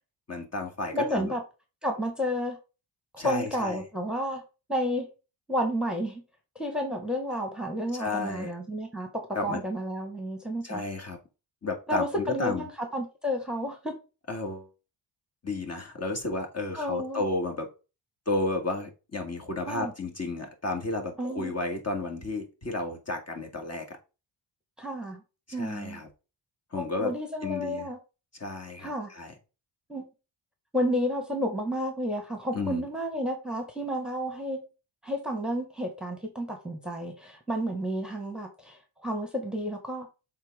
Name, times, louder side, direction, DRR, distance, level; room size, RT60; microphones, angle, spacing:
voice 1, 0.3-1.3 3.2-3.8 8.0-8.5 9.3-9.6 10.6-11.2 11.6-12.6 14.3-14.7 15.4-17.7 18.3-24.0 25.5-26.1 26.7-27.1 27.4-27.9 28.4-29.3 32.5-32.9, left 2 dB, 35° left, 3 dB, 2.3 m, -32 dB
voice 2, 0.9-1.4 1.8-2.6 3.1-4.4 4.7-5.0 5.5-6.2 6.5-9.1 9.4-10.8 11.9-13.9 16.8-17.2 19.6-19.9 21.2-21.5 24.8-25.2 25.5-26.0 26.8-28.0 28.8-29.1 29.9-30.1 30.7-34.6 35.0-40.1, equal, ahead, 3 dB, 1.7 m, -31 dB
7.4 x 4.0 x 3.7 m, 0.29 s
cardioid pair, 80°, 46 cm